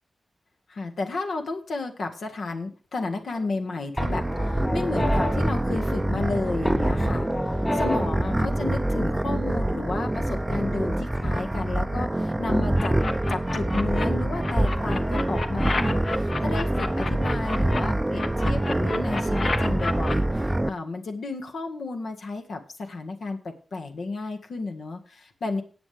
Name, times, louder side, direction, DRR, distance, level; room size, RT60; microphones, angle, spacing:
voice 1, 0.7-13.0 13.3-25.6, left 3 dB, 80° left, 4 dB, 1.7 m, -32 dB
sound 1, 3.0-3.6 4.0-6.3 6.6-8.3, left 2 dB, 35° left, 3.5 m, -33 dB
sound 2, 4.0-20.7, right 1 dB, 15° right, 0.5 m, -25 dB
sound 3, 12.8-14.0 14.4-17.8 18.1-20.1, left 3 dB, 55° left, 1.2 m, -31 dB
18.5 x 7.5 x 3.4 m, 0.36 s
wide cardioid pair, 100°, 0 cm